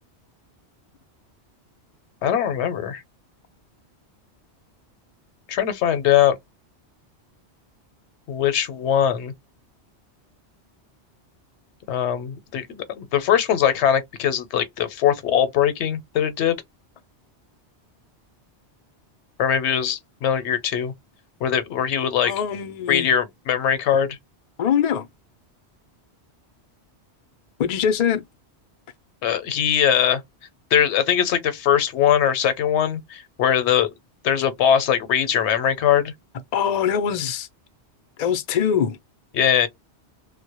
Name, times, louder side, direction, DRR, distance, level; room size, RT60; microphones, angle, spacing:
voice 1, 2.2-3.0 5.5-6.4 8.3-9.3 11.9-16.6 19.4-20.9 21.4-22.3 22.9-24.2 29.2-30.2 30.7-33.9 34.2-36.1 39.3-39.7, left 9 dB, 80° left, 0.9 m, -21 dB
voice 2, 22.2-23.1 24.6-25.1 27.6-28.2 36.5-37.5 38.2-39.0, left 8 dB, 60° left, 0.4 m, -22 dB
2.1 x 2.1 x 2.8 m
omnidirectional pair, 1.2 m